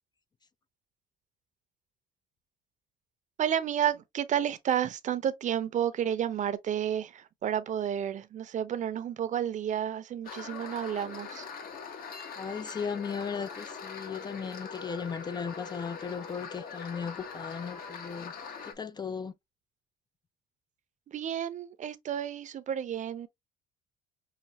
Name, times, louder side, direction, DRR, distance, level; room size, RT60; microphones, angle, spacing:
voice 1, 3.4-11.5 21.1-23.3, right 9 dB, 45° right, 0.6 m, -31 dB
sound 1, 10.2-18.7, left 5 dB, 60° left, 1.2 m, -42 dB
voice 2, 12.4-18.3 18.7-19.3, left 6 dB, 25° left, 0.4 m, -36 dB
5.8 x 2.3 x 2.9 m
cardioid pair, 110°, 17 cm